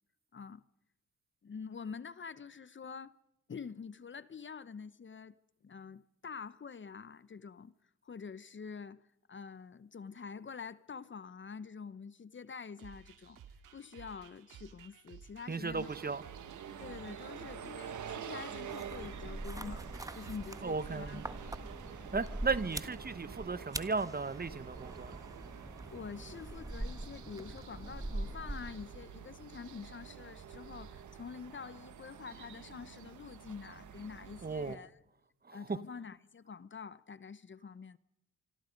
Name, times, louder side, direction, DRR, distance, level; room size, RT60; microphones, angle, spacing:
voice 1, 0.3-0.6 1.4-3.1 3.5-5.4 5.6-7.7 8.0-13.4 13.7-15.9 16.8-19.8 20.1-21.7 22.1-22.4 25.9-35.0 35.5-38.0, left 5 dB, 40° left, 1.0 m, -46 dB
sound 1, 12.8-21.9, right 7 dB, 85° right, 2.2 m, -56 dB
voice 2, 15.5-16.2 20.6-21.2 22.1-25.2 34.4-34.8 35.4-35.8, right 4 dB, 30° right, 1.2 m, -35 dB
sound 2, 15.7-34.8, right 8 dB, 70° right, 1.9 m, -48 dB
sound 3, 18.7-29.1, right 1 dB, 10° right, 1.5 m, -43 dB
26.0 x 26.0 x 5.3 m
cardioid pair, 65°, 31 cm